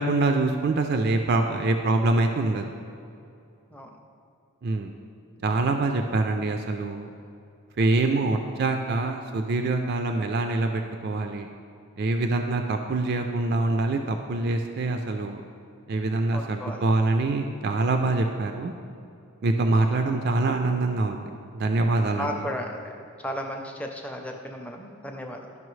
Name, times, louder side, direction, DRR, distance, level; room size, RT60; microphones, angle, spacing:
voice 1, 0.0-2.7 4.6-4.9 5.4-7.1 7.8-11.5 12.0-15.4 15.9-18.7 19.4-21.3 21.5-22.4, right 2 dB, 45° right, 5 dB, 0.3 m, -25 dB
voice 2, 16.3-16.8 19.7-19.9 22.2-22.9 23.2-25.5, equal, 5° left, 2 dB, 0.5 m, -35 dB
12.5 x 5.4 x 3.1 m, 2.6 s
head